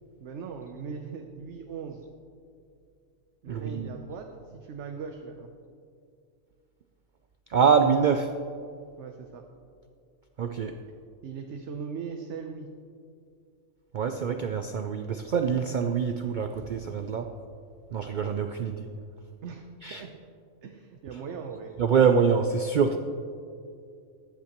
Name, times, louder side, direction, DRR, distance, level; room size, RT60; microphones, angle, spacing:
voice 1, 0.2-2.0 3.4-5.5 9.0-9.4 11.2-12.7 19.4-19.6 19.9-20.1 20.6-21.8, right 6 dB, 65° right, 3 dB, 1.0 m, -39 dB
voice 2, 3.5-3.9 7.5-8.3 10.4-10.8 13.9-17.3 17.9-18.9 19.8-20.0 21.8-23.0, right 6 dB, 90° right, 6 dB, 0.4 m, -25 dB
14.0 x 10.5 x 3.0 m, 2.4 s
omnidirectional pair, 1.4 m